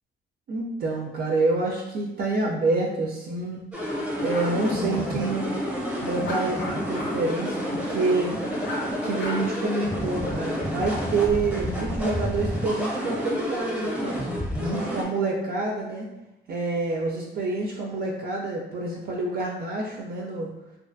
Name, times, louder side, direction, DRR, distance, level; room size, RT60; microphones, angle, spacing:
voice 1, 0.5-3.6 4.2-5.6 6.0-7.6 7.9-8.7 9.0-14.2 14.6-16.1 16.5-20.5, right 3 dB, 50° right, -1 dB, 0.4 m, -27 dB
sound 1, 3.7-15.0, equal, 5° right, 0.7 m, -29 dB
sound 2, 4.2-4.5 6.2-7.1 7.4-7.5 8.6-8.8 9.2-9.8, left 1 dB, 65° left, 0.7 m, -35 dB
2.5 x 2.3 x 2.5 m, 0.95 s
cardioid pair, 90°, 20 cm